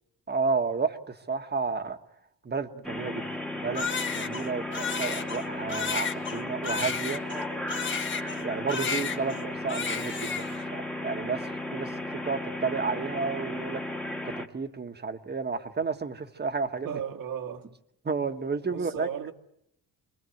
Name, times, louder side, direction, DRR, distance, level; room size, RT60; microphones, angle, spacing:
voice 1, 0.3-2.0 2.4-3.2 3.5-7.2 8.3-13.8 14.2-17.0 18.0-19.1, right 4 dB, 25° right, 1.5 m, -32 dB
sound 1, 2.8-14.5, left 1 dB, 5° left, 1.6 m, -35 dB
Crying sobbing, 3.8-8.4 8.7-9.4 9.7-10.6, left 5 dB, 30° left, 1.5 m, -32 dB
voice 2, 16.8-17.7 18.7-19.3, right 8 dB, 65° right, 1.9 m, -35 dB
27.0 x 21.5 x 7.9 m
cardioid pair, 130°, 37 cm